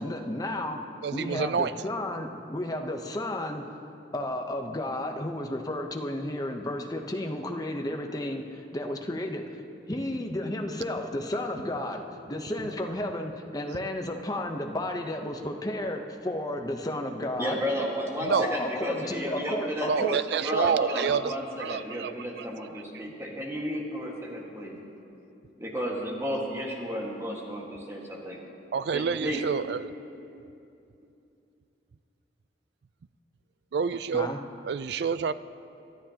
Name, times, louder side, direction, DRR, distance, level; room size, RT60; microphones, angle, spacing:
voice 1, 0.0-0.8 1.1-3.7 4.1-9.6 9.9-17.6 18.3-20.2 34.1-34.4, left 1 dB, 20° left, 3 dB, 0.8 m, -32 dB
voice 2, 1.0-1.7 18.2-18.5 19.9-21.3 21.6-22.1 22.4-22.5 22.9-23.0 28.7-29.9 33.7-34.3 34.6-35.3, right 6 dB, 65° right, 15 dB, 0.4 m, -28 dB
voice 3, 17.4-19.9 20.4-24.8 25.6-28.4 28.9-29.4, equal, 15° right, -2 dB, 1.7 m, -32 dB
23.5 x 11.5 x 2.9 m, 2.7 s
head